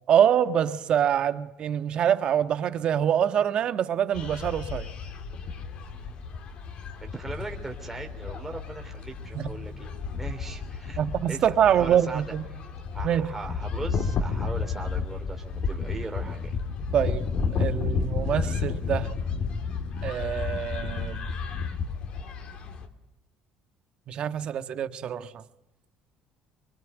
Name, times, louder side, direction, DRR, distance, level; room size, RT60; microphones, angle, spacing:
voice 1, 0.1-4.9 9.3-9.5 11.0-12.4 13.0-13.3 16.9-19.1 20.0-21.2 24.1-25.3, right 9 dB, 50° right, 1.5 m, -25 dB
sound 1, 4.1-22.9, left 5 dB, 55° left, 3.1 m, -32 dB
voice 2, 7.0-9.9 10.2-11.0 11.3-12.3 12.9-16.5, right 3 dB, 10° right, 3.2 m, -39 dB
24.5 x 24.0 x 9.3 m
cardioid pair, 110°, 2 cm